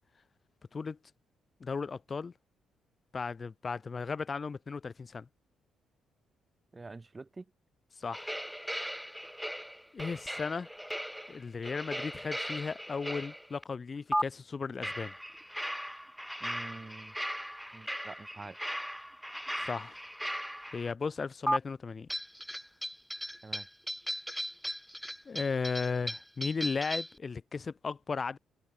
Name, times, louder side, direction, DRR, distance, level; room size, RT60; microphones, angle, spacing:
voice 1, 1.6-2.3 3.1-5.3 8.0-8.3 9.9-10.7 11.3-15.1 19.6-20.0 20.7-22.1 25.3-28.4, left 5 dB, 35° left, 0.4 m, -35 dB
voice 2, 6.7-7.5 16.4-17.2 17.7-18.6 23.4-23.7, right 3 dB, 25° right, 0.9 m, -46 dB
sound 1, 8.1-13.6 14.1-14.2 14.8-20.9 21.5-21.6 22.1-27.2, equal, ahead, 0.9 m, -37 dB
cardioid pair, 90°, 0 cm